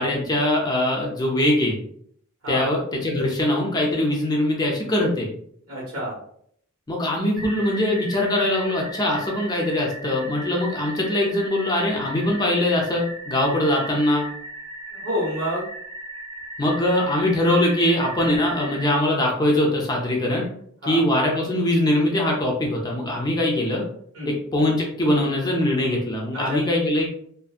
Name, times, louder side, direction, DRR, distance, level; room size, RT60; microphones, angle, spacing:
voice 1, 0.0-1.8 2.5-5.3 6.9-14.3 16.6-20.4 20.9-23.8 24.3-27.2, left 1 dB, 20° left, -1 dB, 0.5 m, -22 dB
voice 2, 5.7-6.2 15.0-15.7 20.8-21.0 24.1-24.3 26.3-26.6, equal, 80° right, -7 dB, 1.4 m, -28 dB
sound 1, 7.4-19.0, right 1 dB, 40° right, 0.8 m, -37 dB
2.6 x 2.5 x 2.4 m, 0.65 s
head